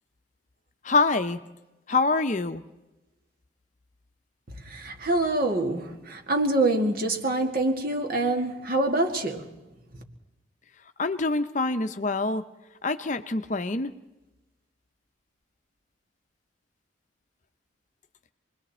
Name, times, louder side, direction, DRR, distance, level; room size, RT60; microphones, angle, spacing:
voice 1, 0.8-1.4 1.9-2.6 11.0-12.4 12.8-13.9, left 3 dB, 40° left, 10 dB, 0.7 m, -25 dB
voice 2, 4.7-9.5, right 2 dB, 50° right, 2 dB, 2.3 m, -25 dB
27.5 x 21.5 x 4.3 m, 1.0 s
head